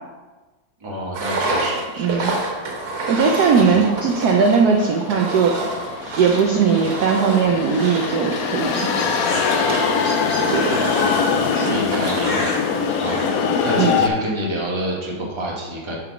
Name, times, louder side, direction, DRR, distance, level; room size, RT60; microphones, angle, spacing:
voice 1, 0.8-2.2 3.6-3.8 10.5-12.6 13.0-16.0, right 1 dB, 20° right, -3 dB, 1.1 m, -29 dB
Engine, 1.1-12.5, right 2 dB, 85° right, 2.0 m, -28 dB
voice 2, 2.0-2.3 3.1-5.8 6.2-8.9 10.5-10.9 11.6-11.8 13.8-14.0, right 5 dB, 70° right, 2 dB, 0.9 m, -19 dB
sound 1, 2.4-14.1, left 6 dB, 75° left, 0.8 m, -24 dB
sound 2, 8.6-13.4, left 1 dB, 30° left, 1.0 m, -30 dB
5.1 x 4.5 x 5.9 m, 1.2 s
omnidirectional pair, 2.2 m